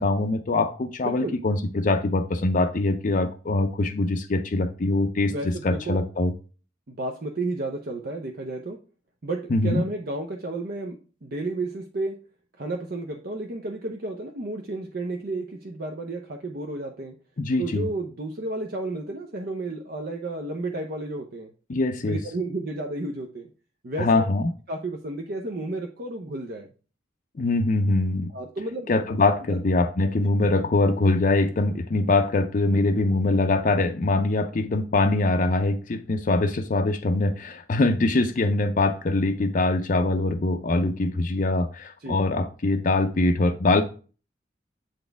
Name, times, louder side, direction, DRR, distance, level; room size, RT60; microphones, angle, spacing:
voice 1, 0.0-6.3 9.5-9.8 17.4-17.9 21.7-22.2 24.0-24.5 27.4-28.3 28.9-43.8, left 2 dB, 45° left, 0.5 m, -23 dB
voice 2, 1.0-1.4 5.3-6.0 6.9-8.8 9.2-12.2 12.6-17.1 17.6-21.5 22.0-23.5 23.8-24.2 24.7-26.7 28.3-28.9 29.5-29.6 30.6-30.7 42.0-42.2, right 2 dB, 55° right, 0.7 m, -32 dB
7.8 x 4.2 x 3.4 m
head